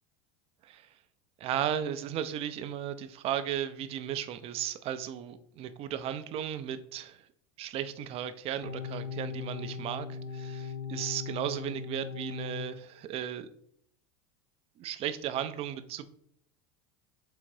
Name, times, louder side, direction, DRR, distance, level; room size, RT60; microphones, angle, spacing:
voice 1, 0.6-0.9 1.4-7.3 7.6-13.5 14.8-16.1, right 10 dB, 40° right, 12 dB, 0.4 m, -35 dB
sound 1, 8.6-12.7, left 5 dB, 90° left, 0.7 m, -39 dB
3.8 x 3.4 x 3.2 m, 0.66 s
hypercardioid pair, 105°, 15 cm